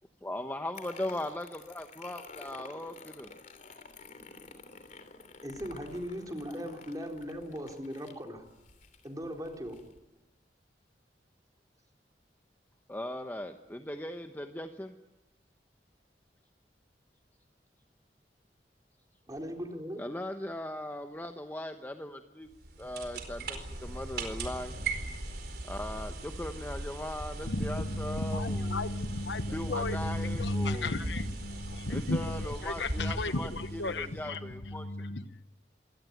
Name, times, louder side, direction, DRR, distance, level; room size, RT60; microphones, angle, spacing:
voice 1, 0.2-3.4 12.9-14.9 20.0-22.5 22.8-24.8 25.6-28.9 29.5-31.0 31.9-35.1, left 1 dB, 10° left, 6 dB, 1.0 m, -39 dB
sound 1, 0.8-10.0, left 4 dB, 45° left, 3.1 m, -51 dB
voice 2, 5.3-8.5 9.0-9.8 19.3-20.1, equal, 20° right, 2 dB, 4.0 m, -39 dB
sound 2, 22.5-34.3, right 2 dB, 60° right, 4.6 m, -39 dB
voice 3, 27.5-34.4 34.7-35.2, left 2 dB, 90° left, 11 dB, 1.2 m, -33 dB
25.5 x 18.5 x 9.4 m, 1.0 s
head